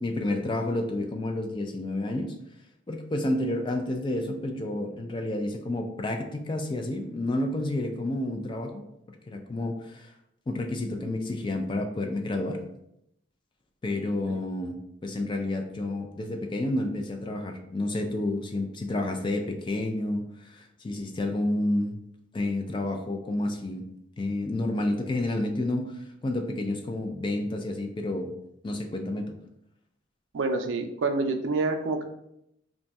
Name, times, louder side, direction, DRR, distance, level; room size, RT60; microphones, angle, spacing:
voice 1, 0.0-2.3 2.9-8.8 9.3-10.1 10.5-12.6 13.8-22.0 22.3-23.9 24.2-28.3 28.6-29.3, left 1 dB, 25° left, 4 dB, 0.3 m, -30 dB
voice 2, 30.3-32.0, right 3 dB, 75° right, 6 dB, 0.4 m, -27 dB
2.6 x 2.3 x 4.0 m, 0.78 s
head